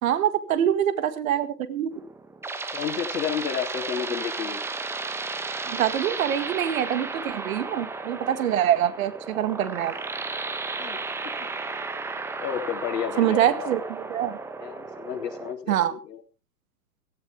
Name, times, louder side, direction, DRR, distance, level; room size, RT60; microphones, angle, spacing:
voice 1, 0.0-2.0 5.7-9.9 13.2-14.4 15.7-16.0, right 10 dB, 55° right, 12 dB, 2.0 m, -25 dB
sound 1, 1.9-15.5, right 3 dB, 5° right, 0.8 m, -34 dB
voice 2, 2.7-4.6 10.8-11.0 11.2-11.4 12.4-13.7 14.6-16.2, left 8 dB, 75° left, 4 dB, 3.5 m, -31 dB
17.0 x 13.5 x 3.6 m, 0.32 s
hypercardioid pair, 125°, 49 cm